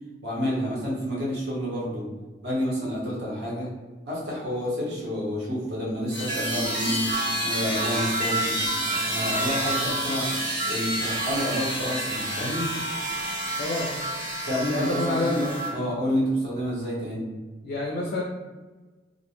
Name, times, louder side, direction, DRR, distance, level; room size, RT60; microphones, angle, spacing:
voice 1, 0.2-2.1 2.4-3.7 4.1-7.1 7.4-8.5 8.9-10.3 10.7-12.7 14.4-17.3, equal, 65° right, -6 dB, 0.8 m, -29 dB
Screech, 6.1-12.1, equal, 25° right, 0.4 m, -37 dB
sound 1, 6.1-15.7, right 1 dB, 85° right, 1.4 m, -29 dB
voice 2, 13.6-14.0 14.7-15.4 17.6-18.2, left 2 dB, 55° left, -1 dB, 0.3 m, -28 dB
2.5 x 2.1 x 2.8 m, 1.3 s
head